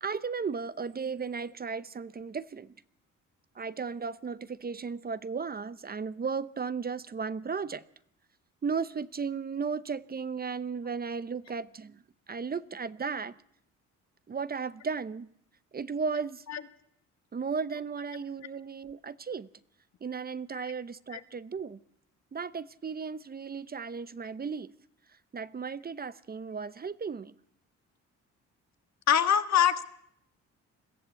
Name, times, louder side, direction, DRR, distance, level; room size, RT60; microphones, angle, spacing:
voice 1, 0.0-2.7 3.6-7.8 8.6-12.0 12.3-13.3 14.3-15.3 15.7-16.4 17.3-19.5 20.0-21.8 22.3-24.7 25.3-27.3, right 5 dB, 30° right, 16 dB, 0.8 m, -35 dB
voice 2, 29.1-29.8, left 9 dB, 60° left, 10 dB, 1.6 m, -24 dB
22.0 x 15.0 x 8.3 m, 0.73 s
cardioid pair, 90°, 30 cm